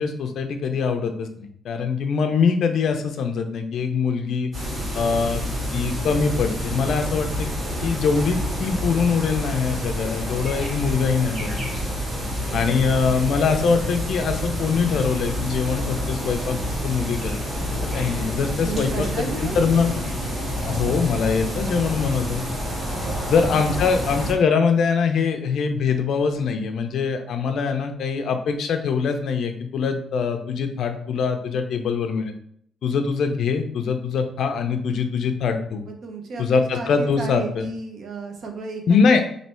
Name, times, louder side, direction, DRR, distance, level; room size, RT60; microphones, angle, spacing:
voice 1, 0.0-4.5 4.9-5.4 5.7-7.5 7.8-11.6 12.5-16.6 16.8-17.4 17.9-19.9 20.6-22.4 23.2-32.3 32.8-35.8 36.4-37.7 38.9-39.2, left 5 dB, 60° left, 6 dB, 0.5 m, -23 dB
sound 1, 4.5-24.3, equal, 30° right, 1.4 m, -28 dB
voice 2, 12.4-12.9 18.6-19.7 22.9-23.9 36.0-39.2, right 3 dB, 50° right, 3 dB, 0.7 m, -34 dB
3.2 x 2.6 x 4.3 m, 0.65 s
cardioid pair, 180°, 0 cm